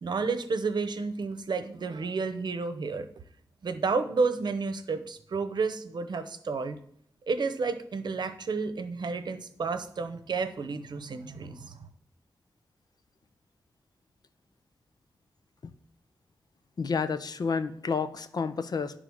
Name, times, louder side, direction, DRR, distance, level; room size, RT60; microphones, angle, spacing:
voice 1, 0.0-3.1 3.6-6.8 7.3-11.9, right 4 dB, 70° right, 10 dB, 0.8 m, -31 dB
voice 2, 16.8-19.0, left 5 dB, 60° left, 12 dB, 0.6 m, -30 dB
11.0 x 3.8 x 6.3 m, 0.66 s
wide cardioid pair, 110°, 8 cm